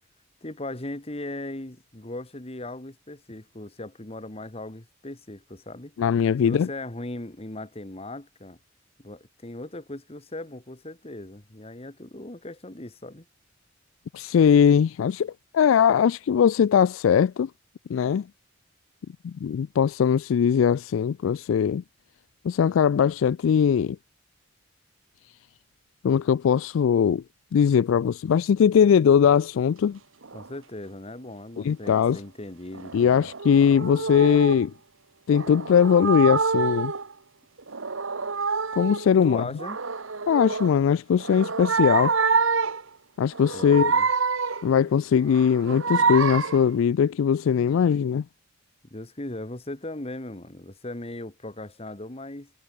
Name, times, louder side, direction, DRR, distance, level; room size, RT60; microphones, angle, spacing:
voice 1, 0.4-6.0 6.4-8.6 9.0-13.3 30.3-33.3 39.2-39.8 43.5-44.1 48.9-52.5, left 1 dB, 30° left, 1.8 m, -38 dB
voice 2, 6.0-6.7 14.1-17.5 17.9-18.2 19.2-21.8 22.4-24.0 26.0-27.2 27.5-30.0 31.6-32.2 32.9-34.7 35.3-36.9 38.8-39.4 40.3-42.1 43.2-43.9 44.6-48.2, left 7 dB, 80° left, 0.3 m, -20 dB
sound 1, 30.2-30.5 31.8-32.2 32.7-34.7 35.3-37.1 37.6-39.1 39.6-40.8 41.2-42.9 43.3-44.7 45.2-46.7, right 5 dB, 80° right, 1.5 m, -27 dB
head